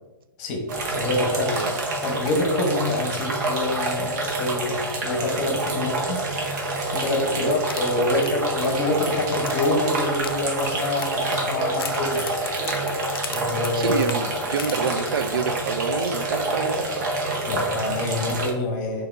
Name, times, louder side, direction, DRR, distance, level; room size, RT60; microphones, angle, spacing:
voice 1, 0.4-1.6 2.0-4.7 5.0-6.2 6.9-12.3 13.3-14.0 17.5-19.1, left 2 dB, 40° left, 2 dB, 1.0 m, -26 dB
sound 1, 0.7-18.5, right 2 dB, 50° right, 1.0 m, -27 dB
sound 2, 7.7-15.4 15.7-16.0 16.3-16.4, left 7 dB, 85° left, 0.4 m, -39 dB
voice 2, 13.7-17.1, right 5 dB, 75° right, 9 dB, 0.4 m, -27 dB
6.3 x 2.6 x 2.6 m, 1.1 s
hypercardioid pair, 150°, 12 cm